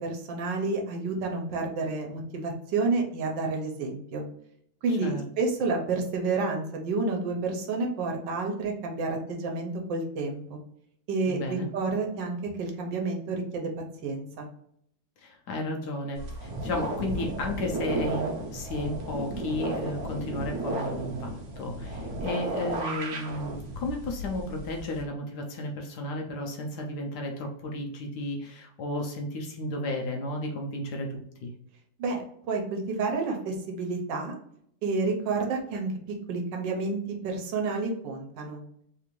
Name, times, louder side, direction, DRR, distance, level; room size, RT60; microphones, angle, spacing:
voice 1, 0.0-4.2 4.8-10.6 11.1-13.7 14.0-14.4 32.0-34.3 34.8-35.9 36.3-38.6, right 3 dB, 75° right, 1 dB, 1.4 m, -30 dB
voice 2, 4.9-5.2 11.2-11.7 15.2-31.5, left 1 dB, 70° left, 1 dB, 1.1 m, -33 dB
sound 1, 16.2-25.0, right 1 dB, 60° right, 1.1 m, -34 dB
3.5 x 2.5 x 3.0 m, 0.70 s
omnidirectional pair, 2.0 m